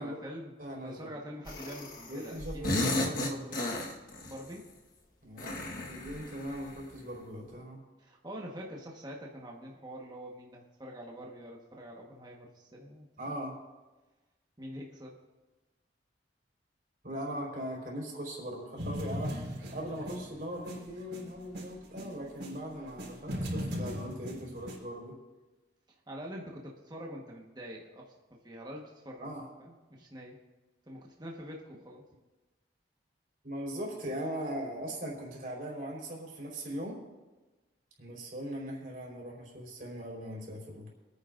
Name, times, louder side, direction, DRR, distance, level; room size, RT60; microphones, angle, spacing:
voice 1, 0.0-0.5 0.8-2.9 4.2-4.7 8.0-13.4 14.6-15.2 26.1-29.3 29.6-30.4 30.9-32.0, equal, 20° right, -1 dB, 1.3 m, -45 dB
voice 2, 0.6-1.1 2.1-3.6 5.2-5.5 5.9-7.8 13.2-13.5 17.0-25.1 29.2-29.4 33.4-37.0 38.0-40.9, equal, 45° right, -2 dB, 4.2 m, -40 dB
sound 1, 1.5-2.1 2.4-4.4 5.4-6.9, left 2 dB, 50° left, 1.4 m, -34 dB
sound 2, 18.8-22.5 22.9-24.8, equal, 70° right, 4.2 m, -38 dB
26.5 x 9.6 x 2.6 m, 1.2 s
head